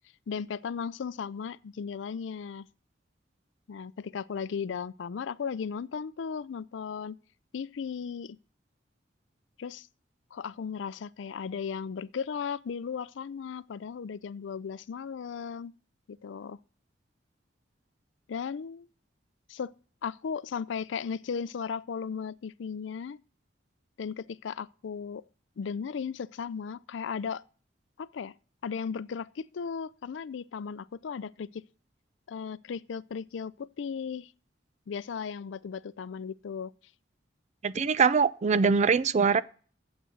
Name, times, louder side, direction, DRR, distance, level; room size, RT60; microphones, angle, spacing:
voice 1, 0.3-2.7 3.7-7.2 7.5-8.4 9.6-9.9 10.3-15.8 16.1-16.6 18.3-18.9 19.5-19.7 20.0-23.2 24.0-25.2 25.6-27.4 28.0-28.3 28.6-31.6 32.3-34.3 34.9-36.7, left 6 dB, 75° left, 0.4 m, -36 dB
voice 2, 37.6-39.4, right 5 dB, 40° right, 0.4 m, -23 dB
8.0 x 6.3 x 7.9 m
head